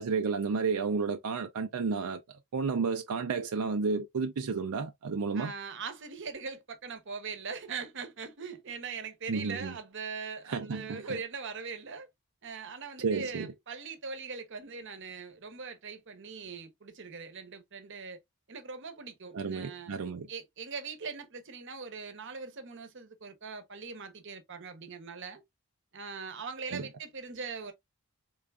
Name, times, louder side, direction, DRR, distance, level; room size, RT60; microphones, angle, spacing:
voice 1, 0.0-2.2 2.5-5.5 9.3-9.7 10.5-11.0 13.0-13.5 19.3-20.3 26.7-26.8, right 4 dB, 85° right, 0.5 m, -31 dB
voice 2, 5.3-12.1 12.4-18.2 18.5-20.0 20.3-25.4 25.9-27.7, right 5 dB, 55° right, 0.9 m, -41 dB
3.8 x 3.4 x 2.4 m
head